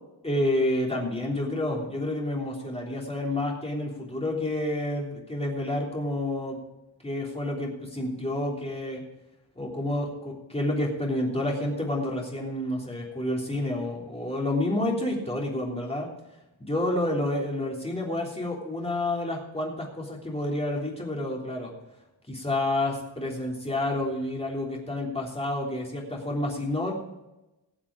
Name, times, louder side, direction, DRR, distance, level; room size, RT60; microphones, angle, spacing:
voice 1, 0.2-6.6 7.0-9.0 9.6-16.1 16.6-21.7 22.3-26.9, left 1 dB, 15° left, -2 dB, 3.3 m, -29 dB
19.0 x 7.3 x 4.8 m, 0.98 s
wide cardioid pair, 145°, 47 cm